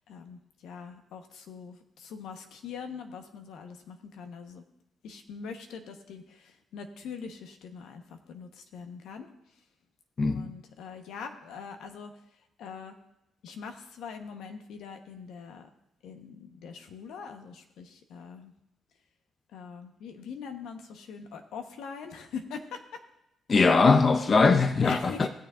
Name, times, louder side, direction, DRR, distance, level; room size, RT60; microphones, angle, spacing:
voice 1, 0.1-4.6 5.0-9.3 10.2-12.1 12.6-13.0 13.4-15.7 16.0-18.5 19.5-23.0 24.8-25.3, left 6 dB, 80° left, 1.0 m, -42 dB
voice 2, 23.5-25.3, left 4 dB, 40° left, 0.6 m, -21 dB
18.5 x 6.8 x 2.5 m
cardioid pair, 90°, 0 cm